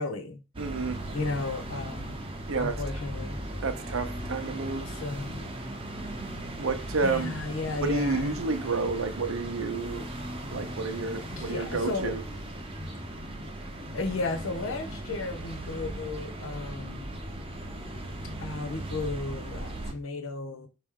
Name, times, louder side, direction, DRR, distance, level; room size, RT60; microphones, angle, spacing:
voice 1, 0.0-0.4 1.1-2.2 2.6-3.4 4.9-5.5 7.0-8.4 11.3-12.2 13.9-17.1 18.4-20.7, left 3 dB, 75° left, 0.7 m, -34 dB
sound 1, 0.5-19.9, right 1 dB, 25° right, 0.7 m, -38 dB
voice 2, 0.6-1.0 2.5-2.8 3.6-4.9 6.6-7.4 7.7-10.1 10.4-12.2, right 3 dB, 75° right, 0.7 m, -30 dB
4.7 x 3.0 x 3.6 m
head